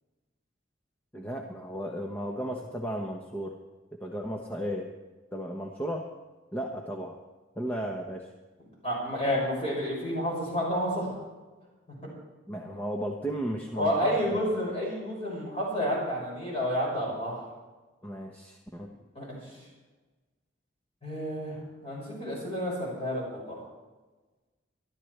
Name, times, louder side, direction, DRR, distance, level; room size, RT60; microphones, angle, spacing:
voice 1, 1.1-3.6 4.0-4.9 5.3-6.1 6.5-7.2 7.6-8.3 12.5-14.4 18.0-18.9, equal, 10° left, 0 dB, 1.0 m, -34 dB
voice 2, 8.8-11.1 11.9-12.0 12.5-12.6 13.7-17.4 19.1-19.4 21.0-23.6, equal, 30° left, -4 dB, 6.3 m, -30 dB
23.5 x 12.5 x 3.3 m, 1.2 s
head